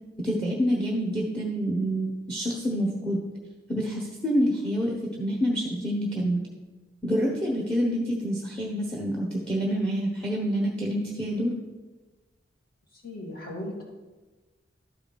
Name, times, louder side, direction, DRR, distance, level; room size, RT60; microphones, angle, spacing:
voice 1, 0.2-3.2 3.7-6.4 7.0-11.5, equal, 5° left, -1 dB, 1.0 m, -27 dB
voice 2, 12.9-13.8, left 1 dB, 55° left, -3 dB, 2.4 m, -37 dB
11.5 x 4.8 x 5.2 m, 1.2 s
head